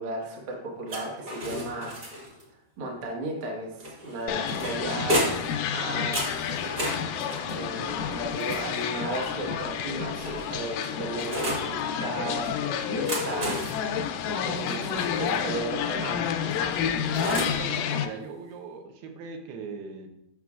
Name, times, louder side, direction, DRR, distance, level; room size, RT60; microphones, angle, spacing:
voice 1, 0.0-2.0 2.8-6.7 7.1-16.3, right 2 dB, 65° right, -1 dB, 1.1 m, -35 dB
sound 1, 0.9-2.4 3.8-5.6 6.1-9.1 9.9-11.7 12.8-15.4 16.5-17.7, equal, 45° right, 1.1 m, -33 dB
sound 2, 4.3-18.1, left 8 dB, 85° left, 1.9 m, -30 dB
voice 2, 17.2-20.1, right 5 dB, 90° right, 4 dB, 2.8 m, -39 dB
9.4 x 6.0 x 2.4 m, 0.82 s
omnidirectional pair, 4.4 m